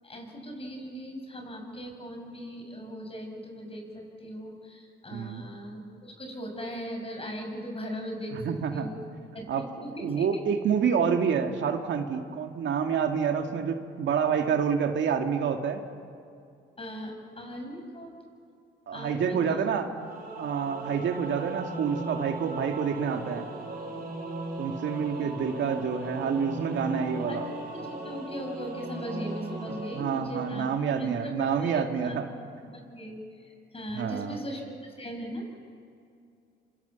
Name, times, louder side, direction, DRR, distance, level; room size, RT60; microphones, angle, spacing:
voice 1, 0.0-8.4 8.7-9.0 9.3-10.4 16.8-18.2 18.9-19.6 25.2-25.3 27.3-27.4 27.7-32.2 32.6-35.4, equal, 30° left, 3 dB, 7.0 m, -39 dB
voice 2, 5.1-5.4 8.3-8.9 9.5-9.6 10.0-15.8 18.9-19.9 20.4-23.5 24.6-27.5 30.0-32.3 33.9-34.4, right 7 dB, 70° right, 5 dB, 2.0 m, -28 dB
Singing / Musical instrument, 20.0-31.2, right 2 dB, 45° right, 6.9 m, -38 dB
27.0 x 26.0 x 7.1 m, 2.5 s
cardioid pair, 90°, 20 cm